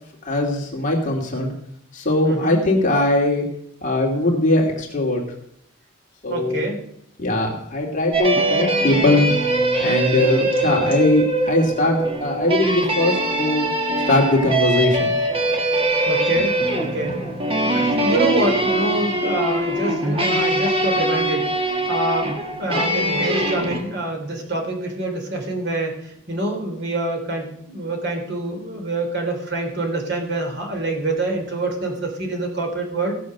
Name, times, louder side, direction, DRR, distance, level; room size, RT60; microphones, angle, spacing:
voice 1, 0.2-1.5 1.9-3.4 3.8-5.2 6.2-6.6 7.2-9.3 9.8-13.7 14.1-15.1, left 2 dB, 35° left, 0 dB, 2.5 m, -20 dB
voice 2, 2.2-2.6 6.3-6.8 16.0-17.3 17.7-33.1, right 2 dB, 50° right, 2 dB, 3.1 m, -26 dB
sound 1, 8.1-23.8, right 1 dB, 25° right, 1.6 m, -22 dB
16.5 x 6.4 x 6.6 m, 0.73 s
head